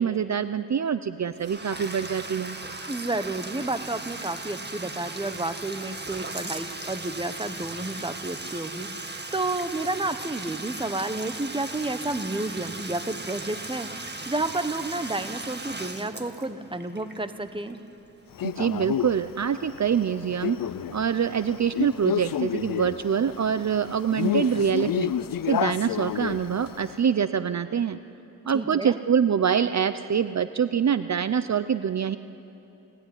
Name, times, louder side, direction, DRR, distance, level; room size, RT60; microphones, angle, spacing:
voice 1, 0.0-2.6 18.4-20.6 20.9-25.1 25.5-28.0 28.4-32.2, right 7 dB, 55° right, 12 dB, 0.6 m, -25 dB
Bathtub (filling or washing), 1.3-18.1, right 2 dB, 30° right, 1.8 m, -38 dB
voice 2, 2.9-17.8 28.5-29.0, right 2 dB, 15° right, 10 dB, 1.2 m, -31 dB
Male speech man speaking, 18.4-26.9, left 10 dB, 80° left, 0.6 m, -30 dB
29.5 x 17.0 x 9.8 m, 3.0 s
wide cardioid pair, 85°, 34 cm